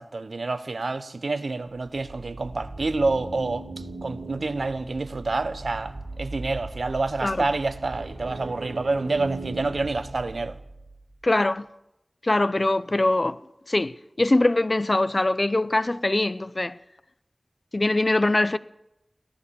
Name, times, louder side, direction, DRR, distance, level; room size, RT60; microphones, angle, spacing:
voice 1, 0.0-3.6 4.0-5.9 6.2-10.6, right 3 dB, 80° right, 0.8 m, -28 dB
sound 1, 1.9-11.0, right 2 dB, 45° right, 3.0 m, -38 dB
voice 2, 11.2-11.7 12.2-13.4 13.7-16.7 17.7-18.6, left 2 dB, 45° left, 0.6 m, -22 dB
16.5 x 12.5 x 6.9 m
wide cardioid pair, 65°, 0 cm